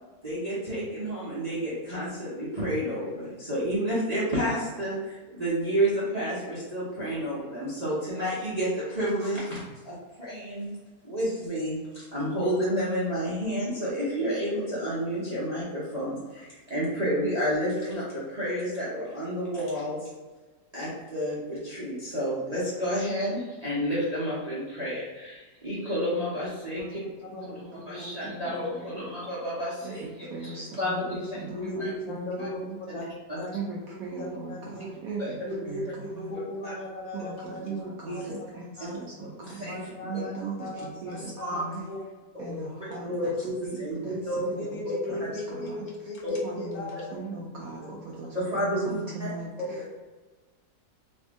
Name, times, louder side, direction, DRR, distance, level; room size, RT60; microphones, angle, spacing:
voice 1, 0.2-10.7 11.0-20.1 20.7-27.0 27.5-31.3 31.8-31.9 32.4-32.5 32.9-33.0 33.3-33.4 34.8-34.9 35.2-35.3 36.6-36.7 38.1-38.2 38.8-38.9 39.4-39.8 41.4-41.6 42.8-44.5 44.8-45.3 46.2-46.3 48.3-49.3, equal, 35° right, -9 dB, 0.6 m, -30 dB
voice 2, 27.2-28.1 28.5-28.6 31.5-33.1 33.3-33.5 34.1-34.9 35.4-35.8 36.1-37.9 38.1-38.5 38.8-39.0 39.7-40.3 40.6-41.6 41.9-42.0 44.5-47.0 49.7-49.9, left 1 dB, 65° left, -3 dB, 1.1 m, -37 dB
voice 3, 28.7-29.1 29.8-32.8 33.5-36.4 37.1-39.8 40.0-41.9 42.4-43.3 43.7-44.7 45.1-45.8 46.4-49.5, right 3 dB, 70° right, -3 dB, 0.8 m, -39 dB
3.4 x 2.6 x 3.5 m, 1.3 s
omnidirectional pair, 1.9 m